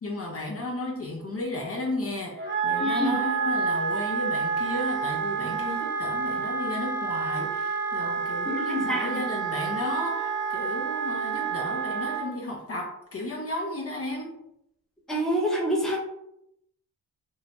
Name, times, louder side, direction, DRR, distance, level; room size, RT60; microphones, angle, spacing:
voice 1, 0.0-14.3, left 1 dB, 40° left, -2 dB, 0.6 m, -34 dB
Wind instrument woodwind instrument, 2.4-12.3, right 5 dB, 30° right, 0.7 m, -29 dB
voice 2, 2.8-3.2 8.5-9.2 15.1-16.0, equal, ahead, -2 dB, 0.7 m, -27 dB
2.7 x 2.1 x 2.8 m, 0.78 s
cardioid pair, 85°, 36 cm